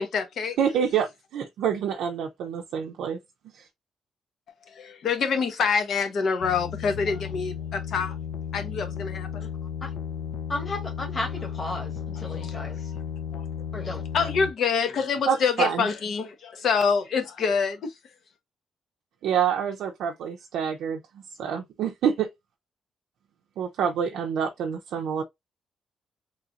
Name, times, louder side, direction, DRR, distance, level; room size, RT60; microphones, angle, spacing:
voice 1, 0.0-0.6 4.7-8.2 8.5-9.5 12.3-12.7 13.3-13.4 14.1-17.9, left 5 dB, 60° left, 0.9 m, -26 dB
voice 2, 0.6-3.2 3.5-3.6 15.3-15.9 19.2-21.0 21.4-22.3 23.6-25.2, right 8 dB, 90° right, 0.5 m, -27 dB
sound 1, 6.4-14.5, left 8 dB, 85° left, 0.5 m, -34 dB
voice 3, 10.5-12.9 13.7-14.3, left 2 dB, 30° left, 1.2 m, -34 dB
3.1 x 2.5 x 2.7 m
cardioid pair, 135°, 0 cm